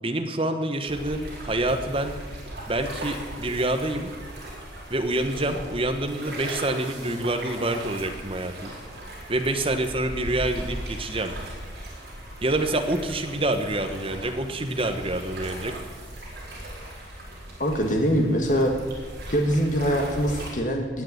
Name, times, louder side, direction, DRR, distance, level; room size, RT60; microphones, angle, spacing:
voice 1, 0.0-2.1 2.7-4.1 4.9-8.7 9.3-11.3 12.4-15.7, right 1 dB, 30° right, 6 dB, 1.2 m, -27 dB
sound 1, 0.9-20.5, right 1 dB, 55° right, 4.5 m, -38 dB
voice 2, 17.6-18.7 19.3-21.0, equal, 45° left, 2 dB, 1.5 m, -23 dB
18.5 x 6.8 x 9.5 m, 1.5 s
head